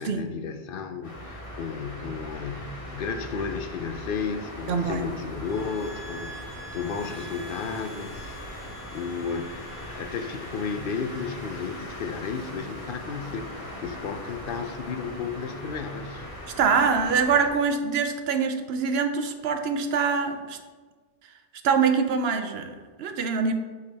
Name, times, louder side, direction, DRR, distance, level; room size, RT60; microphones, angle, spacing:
voice 1, 0.0-16.3, left 5 dB, 65° left, 7 dB, 0.7 m, -33 dB
sound 1, 1.0-17.5, equal, 30° left, 1.6 m, -40 dB
voice 2, 4.7-5.1 16.6-20.6 21.6-23.5, right 5 dB, 75° right, 7 dB, 0.9 m, -24 dB
sound 2, 5.4-11.3, right 1 dB, 25° right, 1.4 m, -47 dB
8.0 x 4.7 x 3.4 m, 1.4 s
omnidirectional pair, 1.1 m